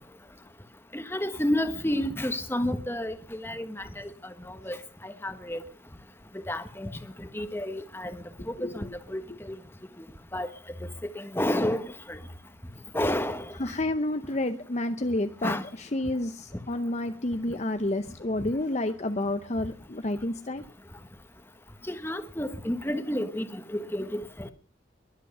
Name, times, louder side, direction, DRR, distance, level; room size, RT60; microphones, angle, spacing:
voice 1, 0.9-4.1 4.5-4.8 5.0-5.6 6.5-6.9 7.3-8.2 8.5-9.6 10.3-10.5 11.0-12.2 12.9-13.4 15.4-15.6 21.9-24.5, left 1 dB, 10° left, 1.3 m, -30 dB
voice 2, 8.6-8.9 13.6-20.6, left 1 dB, 35° left, 0.7 m, -30 dB
22.0 x 8.3 x 6.6 m
head